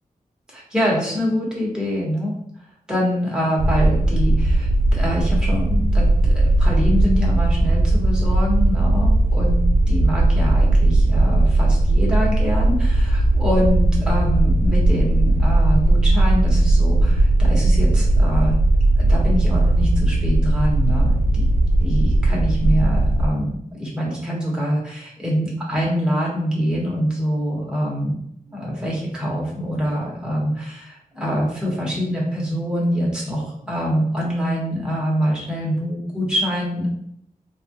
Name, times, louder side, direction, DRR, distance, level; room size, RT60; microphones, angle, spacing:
voice 1, 0.5-2.3 2.9-9.6 9.9-18.6 19.0-21.5 21.8-28.2 28.5-36.9, equal, 5° right, -5 dB, 1.3 m, -25 dB
sound 1, 3.6-23.3, right 1 dB, 70° right, 0.5 m, -17 dB
3.4 x 2.4 x 2.9 m, 0.71 s
wide cardioid pair, 70°, 15 cm